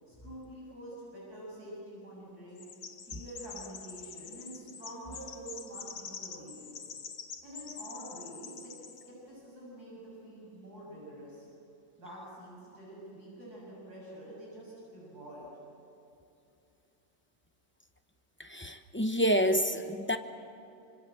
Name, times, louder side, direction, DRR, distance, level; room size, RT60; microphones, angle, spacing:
voice 1, 0.1-2.7 3.0-6.9 7.4-11.5 12.0-15.5, right 1 dB, 60° right, -5 dB, 7.4 m, -47 dB
Chirp tweet, 2.6-9.1, left 6 dB, 65° left, 1.9 m, -45 dB
voice 2, 18.4-20.2, equal, 15° left, 7 dB, 0.4 m, -28 dB
25.5 x 25.0 x 7.8 m, 2.7 s
omnidirectional pair, 1.9 m